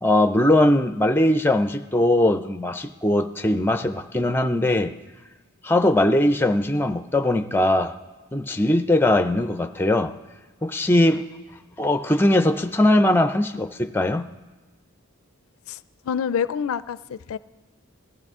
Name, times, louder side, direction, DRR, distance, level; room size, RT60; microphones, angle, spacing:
voice 1, 0.0-4.9 5.6-7.9 8.3-10.1 10.6-11.2 11.8-14.3, left 1 dB, 10° left, 8 dB, 0.5 m, -20 dB
voice 2, 15.7-17.4, left 7 dB, 75° left, 16 dB, 0.4 m, -27 dB
21.5 x 15.0 x 3.6 m, 1.2 s
head